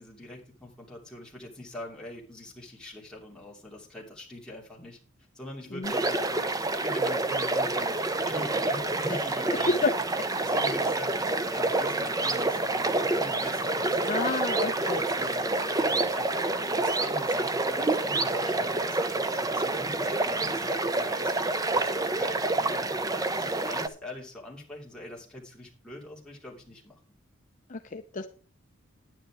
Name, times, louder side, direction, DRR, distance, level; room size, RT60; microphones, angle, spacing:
voice 1, 0.0-5.0 5.3-8.0 8.2-9.8 10.4-22.8 23.4-27.0, left 1 dB, 5° left, -3 dB, 2.9 m, -43 dB
sound 1, 5.8-23.9, right 2 dB, 15° right, 0.6 m, -28 dB
voice 2, 14.0-15.0 27.7-28.3, left 3 dB, 40° left, 6 dB, 0.6 m, -29 dB
10.0 x 9.4 x 4.7 m, 0.40 s
head